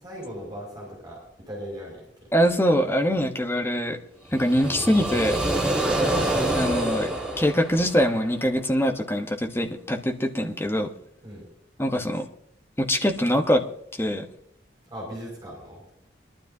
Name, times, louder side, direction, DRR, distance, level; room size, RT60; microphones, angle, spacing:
voice 1, 0.0-1.2 1.5-2.0 5.8-6.1 11.2-11.4 14.9-15.8, equal, 20° right, -4 dB, 5.9 m, -38 dB
voice 2, 2.3-4.0 4.3-5.4 6.5-7.1 7.4-10.9 11.8-12.3 12.8-13.6 14.0-14.2, equal, 15° left, 3 dB, 1.1 m, -23 dB
sound 1, 4.3-8.3, right 1 dB, 5° right, 1.6 m, -26 dB
23.0 x 12.0 x 2.8 m, 0.72 s
head